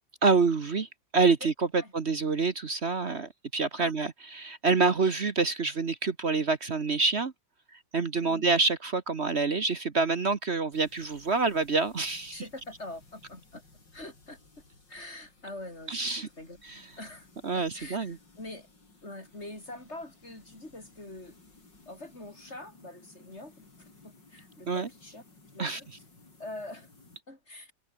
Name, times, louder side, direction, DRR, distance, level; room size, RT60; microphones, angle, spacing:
voice 1, 0.2-7.3 7.9-12.4 15.9-16.3 16.7-16.8 17.4-18.2 24.7-24.9 25.6-25.8, right 4 dB, 40° right, 1.3 m, -27 dB
sound 1, 10.7-27.2, left 3 dB, 70° left, 6.1 m, -58 dB
voice 2, 12.3-13.6 13.9-14.4 14.9-16.6 17.0-17.3 17.6-18.7 19.0-21.4 21.9-25.2 25.5-25.9 26.4-26.9 27.3-27.7, left 2 dB, 35° left, 6.7 m, -44 dB
omnidirectional pair, 2.0 m